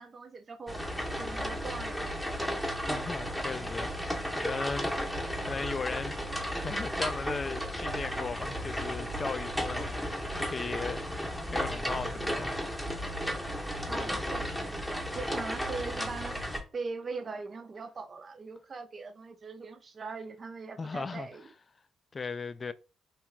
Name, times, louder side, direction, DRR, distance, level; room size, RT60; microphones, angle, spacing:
voice 1, 0.0-2.1 13.9-14.7 15.1-16.4 16.7-21.5, right 4 dB, 40° right, 0.4 m, -41 dB
sound 1, 0.7-16.6, equal, 5° left, 0.8 m, -34 dB
voice 2, 2.9-4.9 5.2-12.7 20.8-21.3 22.1-22.7, left 4 dB, 35° left, 0.3 m, -37 dB
2.9 x 2.3 x 3.2 m
cardioid pair, 90°, 0 cm